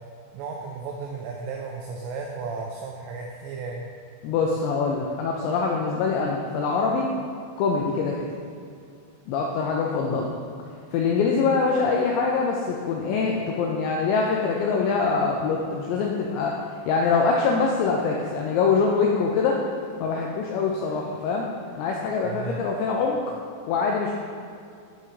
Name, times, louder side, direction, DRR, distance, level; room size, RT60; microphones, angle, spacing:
voice 1, 0.3-3.8 22.2-22.6, right 4 dB, 85° right, 0 dB, 2.5 m, -34 dB
voice 2, 4.2-7.1 7.6-8.3 9.3-10.3 10.9-16.5 16.9-19.6 20.0-21.5 21.8-23.2 23.7-24.1, left 4 dB, 85° left, 0 dB, 2.5 m, -24 dB
7.7 x 6.8 x 3.1 m, 2.3 s
omnidirectional pair, 5.6 m